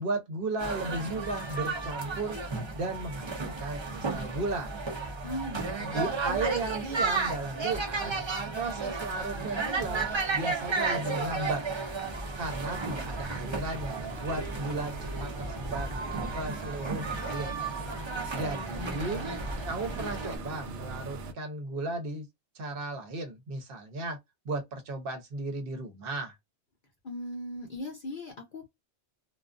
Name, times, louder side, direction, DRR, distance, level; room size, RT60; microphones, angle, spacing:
voice 1, 0.0-2.4 2.7-4.7 5.9-8.2 8.5-11.7 12.4-14.9 15.2-16.0 16.3-17.6 18.3-19.2 19.7-22.3 22.5-24.2 24.4-26.4, right 2 dB, 55° right, 1.0 m, -35 dB
sound 1, 0.6-20.4, right 4 dB, 30° right, 0.6 m, -33 dB
voice 2, 5.2-6.4 18.1-19.4 27.0-28.7, left 1 dB, 50° left, 0.8 m, -39 dB
sound 2, 12.5-21.3, right 4 dB, 90° right, 0.9 m, -42 dB
2.4 x 2.4 x 2.4 m
omnidirectional pair, 1.2 m